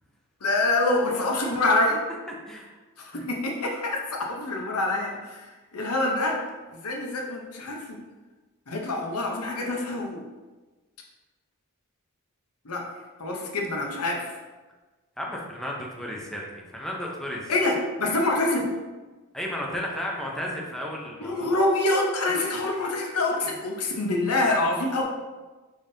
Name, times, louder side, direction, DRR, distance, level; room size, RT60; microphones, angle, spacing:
voice 1, 0.4-2.0 3.0-6.4 6.7-8.0 8.7-10.2 12.6-12.9 13.2-14.3 17.5-18.7 21.2-25.0, left 2 dB, 85° left, 0 dB, 0.8 m, -26 dB
voice 2, 2.5-3.2 15.2-17.5 19.3-21.6 23.3-23.4, equal, ahead, -3 dB, 0.6 m, -34 dB
5.2 x 3.7 x 2.7 m, 1.3 s
head